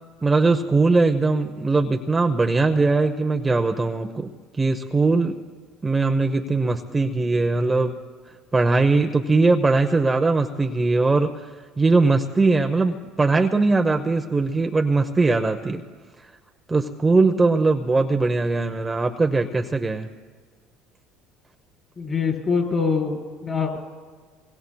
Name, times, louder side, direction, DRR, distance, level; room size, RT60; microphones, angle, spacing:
voice 1, 0.2-4.3 4.6-5.4 5.8-7.9 8.5-11.3 11.8-15.8 16.7-20.1, right 3 dB, 20° right, 5 dB, 0.8 m, -20 dB
voice 2, 22.0-23.8, left 5 dB, 35° left, 1 dB, 4.4 m, -24 dB
26.5 x 22.0 x 2.3 m, 1.5 s
supercardioid pair, 80°, 0 cm